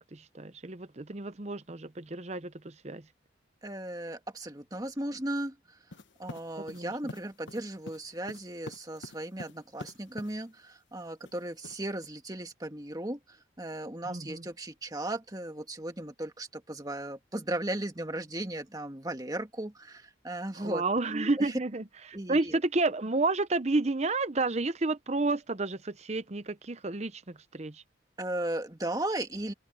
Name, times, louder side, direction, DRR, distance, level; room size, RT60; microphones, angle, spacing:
voice 1, 0.0-3.1 6.6-6.9 14.1-14.4 20.5-27.8, right 3 dB, 35° right, 0.8 m, -31 dB
voice 2, 3.6-5.8 6.2-20.8 21.4-21.5 22.1-22.6 28.2-29.5, right 1 dB, 20° right, 2.0 m, -36 dB
sound 1, 5.9-10.4 11.2-12.1, left 2 dB, 80° left, 1.3 m, -45 dB
open air
head